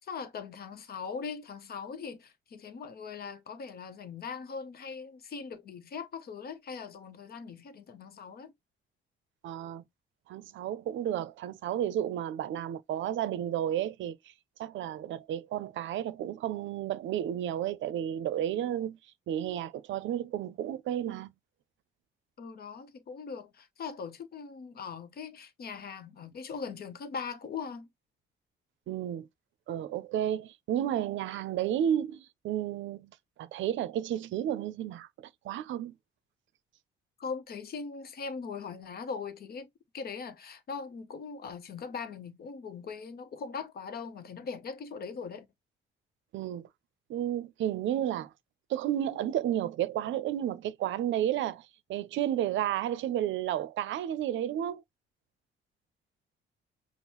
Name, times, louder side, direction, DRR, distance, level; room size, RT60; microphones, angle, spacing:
voice 1, 0.0-8.5 22.4-27.9 37.2-39.7 39.9-45.5, left 5 dB, 50° left, 0.8 m, -40 dB
voice 2, 9.4-9.8 10.3-14.3 14.6-19.0 19.3-21.3 28.9-29.3 29.7-33.1 33.4-35.9 46.3-46.7 47.1-48.3 48.7-54.8, right 11 dB, 70° right, 0.5 m, -32 dB
5.3 x 2.0 x 2.9 m
cardioid pair, 90°, 20 cm